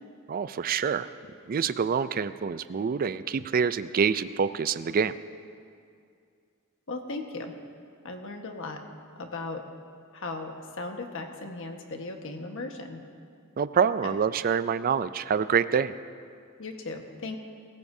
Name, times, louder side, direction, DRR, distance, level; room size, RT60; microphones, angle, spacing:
voice 1, 0.3-1.1 1.5-5.1 13.6-15.9, right 6 dB, 40° right, 14 dB, 0.4 m, -26 dB
voice 2, 6.9-7.5 8.0-8.8 9.2-9.6 10.1-13.0 14.0-14.1 16.6-17.4, left 3 dB, 65° left, 3 dB, 1.4 m, -37 dB
25.0 x 14.5 x 2.7 m, 2.3 s
head